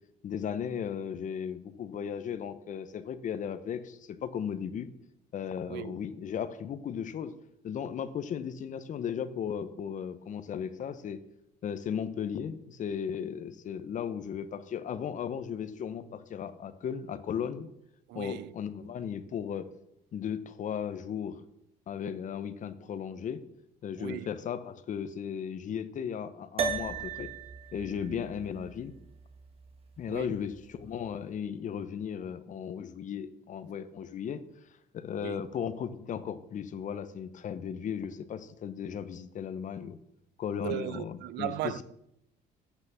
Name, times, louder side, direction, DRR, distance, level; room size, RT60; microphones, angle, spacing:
voice 1, 0.2-4.9 5.3-7.3 7.6-11.2 11.6-17.7 18.1-19.7 20.1-21.5 21.9-23.4 23.8-27.3 27.7-28.9 30.0-34.4 34.9-40.0 40.4-41.7, left 8 dB, 50° left, 0.8 m, -36 dB
voice 2, 5.7-6.0 18.1-18.5 24.0-24.3 28.1-28.2 30.1-30.4 35.2-35.4 40.6-41.8, right 15 dB, 85° right, 0.5 m, -37 dB
sound 1, 26.6-31.2, right 6 dB, 35° right, 1.4 m, -38 dB
8.3 x 5.9 x 6.9 m
cardioid pair, 110°, 17 cm